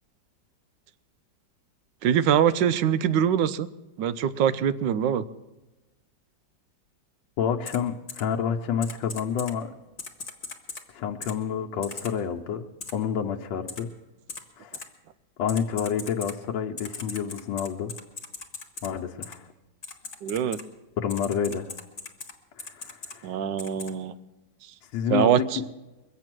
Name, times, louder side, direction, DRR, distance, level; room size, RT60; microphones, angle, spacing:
voice 1, 2.0-3.7 4.0-5.2 20.2-20.6 23.2-24.1 25.1-25.6, right 9 dB, 80° right, 14 dB, 1.3 m, -23 dB
voice 2, 7.4-9.7 10.9-12.7 12.9-13.9 14.6-14.8 15.4-17.9 18.8-19.5 21.0-21.7 22.6-23.3 24.9-25.6, left 7 dB, 90° left, 2 dB, 1.5 m, -29 dB
Typing, 7.6-7.8 8.1-8.2 8.8-9.5 10.0-10.8 11.2-11.3 11.8-12.1 12.8-12.9 13.7-13.8 14.3-14.4 14.7-14.8 15.5-16.3 16.8-18.9 19.2-19.3 19.8-20.6 21.1-22.3 22.6-23.1 23.6-23.9, left 4 dB, 30° left, 1.3 m, -38 dB
22.5 x 8.1 x 6.1 m, 1.1 s
omnidirectional pair, 2.0 m